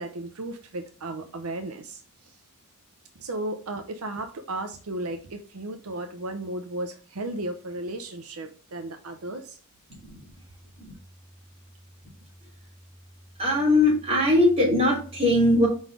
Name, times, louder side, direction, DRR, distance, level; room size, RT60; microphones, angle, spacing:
voice 1, 0.0-2.4 3.2-9.6, right 2 dB, 80° right, 6 dB, 0.7 m, -35 dB
voice 2, 13.4-15.7, left 1 dB, 30° right, -2 dB, 3.1 m, -20 dB
5.2 x 4.0 x 4.7 m, 0.40 s
head